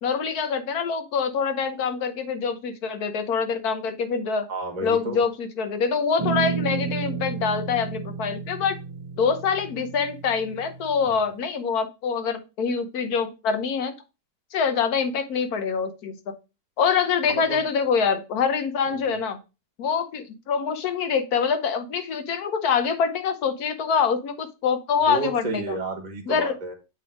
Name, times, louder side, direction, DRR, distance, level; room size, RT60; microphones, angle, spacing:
voice 1, 0.0-4.4 4.8-8.8 9.2-13.9 14.5-16.3 16.8-19.4 19.8-25.8 26.3-26.5, left 6 dB, 70° left, 8 dB, 1.4 m, -25 dB
voice 2, 4.5-5.3 17.3-17.6 18.9-19.2 25.1-26.7, right 3 dB, 30° right, 3 dB, 1.3 m, -31 dB
sound 1, 6.2-11.2, right 6 dB, 60° right, 0.3 m, -32 dB
7.3 x 3.5 x 4.9 m, 0.29 s
omnidirectional pair, 1.7 m